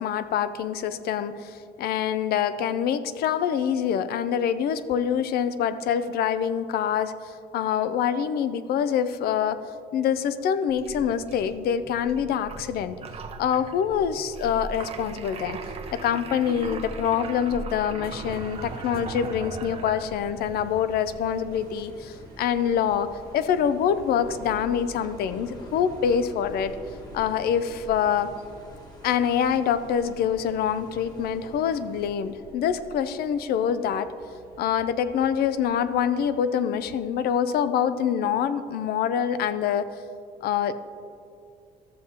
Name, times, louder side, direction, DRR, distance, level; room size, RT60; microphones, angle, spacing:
voice 1, 0.0-9.6 9.9-13.0 13.4-15.6 15.9-26.8 27.1-28.3 29.0-34.1 34.6-39.9 40.4-40.7, left 8 dB, 70° left, 13 dB, 0.5 m, -25 dB
sound 1, 10.7-20.4, right 3 dB, 35° right, 0.7 m, -39 dB
sound 2, 18.0-36.8, right 3 dB, 70° right, 1.1 m, -46 dB
sound 3, 21.5-32.1, left 1 dB, 25° left, 1.3 m, -47 dB
13.5 x 7.3 x 2.8 m, 2.5 s
cardioid pair, 110°, 17 cm